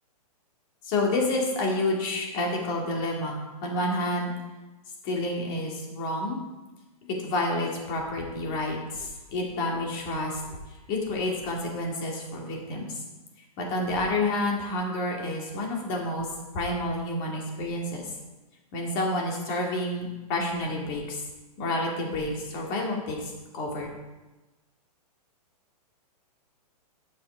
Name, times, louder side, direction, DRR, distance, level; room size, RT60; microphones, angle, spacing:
voice 1, 0.9-4.3 5.0-6.4 7.0-10.4 10.9-12.9 13.6-16.3 16.5-18.0 18.7-21.2 21.6-23.2 23.5-23.9, left 2 dB, 30° left, -1 dB, 2.3 m, -29 dB
10.5 x 6.3 x 4.9 m, 1.1 s
hypercardioid pair, 165°, 20 cm